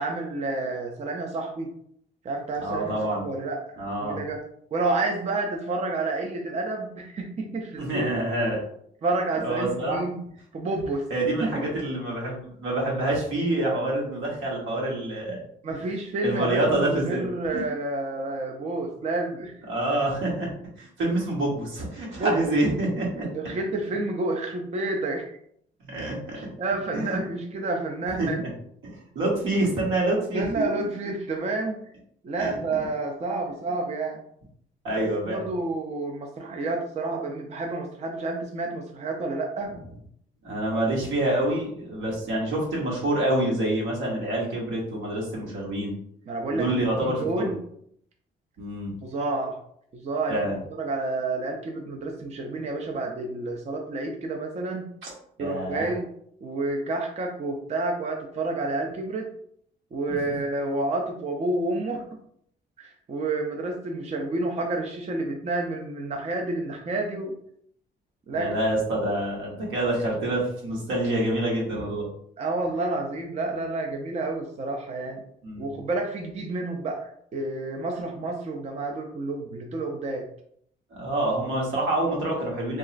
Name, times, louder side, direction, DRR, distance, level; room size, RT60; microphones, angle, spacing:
voice 1, 0.0-1.7 2.2-3.6 4.0-4.4 4.7-8.1 8.4-8.6 9.0-10.2 10.5-11.1 11.4-11.5 15.6-19.5 22.2-22.6 23.2-25.3 26.4-28.4 30.3-31.8 32.2-34.2 35.0-39.7 46.3-47.6 49.0-49.6 49.9-50.4 50.7-54.9 55.4-56.1 56.4-59.3 59.9-62.0 62.8-67.4 68.3-68.5 72.4-75.2 75.6-80.3, right 2 dB, 35° right, 2 dB, 0.4 m, -29 dB
voice 2, 2.6-3.3 3.8-4.2 7.8-8.6 9.4-10.0 11.1-15.4 16.2-17.2 17.5-17.6 19.7-20.5 20.8-23.3 25.8-26.4 26.9-27.2 28.2-28.5 28.8-30.5 32.4-32.6 34.8-35.4 40.4-46.0 46.5-47.5 48.6-48.9 50.3-50.6 55.0-55.1 55.4-55.9 60.1-60.2 68.3-72.1 75.4-75.8 80.9-82.8, right 1 dB, 80° right, -3 dB, 1.1 m, -27 dB
2.9 x 2.3 x 2.4 m, 0.67 s
cardioid pair, 90°, 20 cm